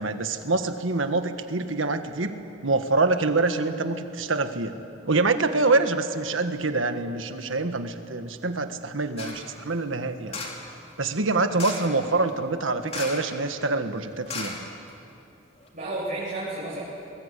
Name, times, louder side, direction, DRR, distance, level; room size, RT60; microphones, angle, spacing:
voice 1, 0.0-4.7 5.1-10.4 11.0-14.7, right 3 dB, 85° right, 8 dB, 1.6 m, -25 dB
sound 1, 9.2-9.5 10.3-10.7 11.6-12.0 12.9-13.4 13.6-13.7 14.3-15.1 15.6-15.7, left 3 dB, 30° left, 3.1 m, -35 dB
voice 2, 11.6-12.0 15.7-16.8, right 2 dB, 40° right, -9 dB, 7.4 m, -32 dB
24.5 x 22.0 x 8.4 m, 2.7 s
head